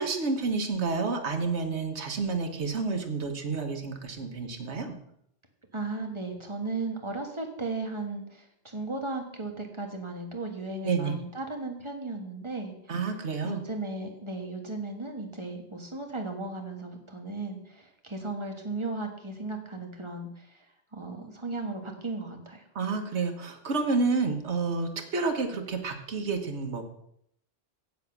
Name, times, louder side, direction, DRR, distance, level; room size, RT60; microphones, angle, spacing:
voice 1, 0.0-4.9 10.8-11.2 12.9-13.6 22.7-26.8, right 4 dB, 75° right, 5 dB, 1.6 m, -29 dB
voice 2, 5.7-12.7 13.4-20.6 20.9-22.6, right 3 dB, 25° right, 2 dB, 1.6 m, -36 dB
8.4 x 7.5 x 5.9 m, 0.72 s
omnidirectional pair, 1.2 m